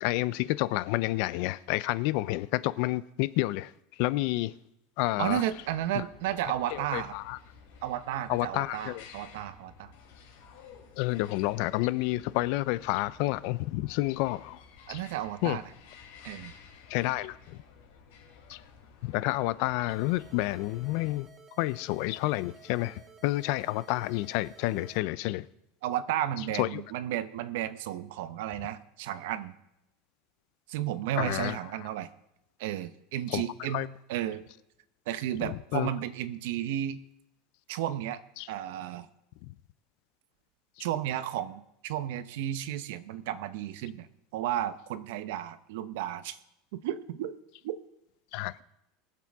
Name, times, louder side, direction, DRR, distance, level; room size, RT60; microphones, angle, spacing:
voice 1, 0.0-4.5 5.0-5.4 5.9-6.0 6.7-7.4 8.3-9.0 11.0-14.6 14.9-15.0 15.4-15.6 16.9-17.6 18.5-18.6 19.0-21.3 21.6-25.5 26.6-26.8 31.2-31.9 33.3-33.4 33.7-33.9 35.4-35.9 38.4-38.5 39.4-39.5 40.8-40.9 48.3-48.5, left 18 dB, 50° left, 0.4 m, -30 dB
voice 2, 5.2-7.1 7.8-9.9 14.9-15.6 16.2-16.5 25.8-29.5 30.7-32.1 32.6-34.4 35.1-37.0 37.7-38.2 38.5-39.1 40.8-44.1 44.3-46.4 46.7-47.4 47.6-47.8, right 12 dB, 65° right, 0.7 m, -33 dB
sound 1, 5.3-21.2, left 6 dB, 70° left, 3.7 m, -54 dB
sound 2, 19.9-25.0, right 6 dB, 15° right, 0.7 m, -54 dB
22.0 x 7.5 x 3.5 m
supercardioid pair, 170°, 0 cm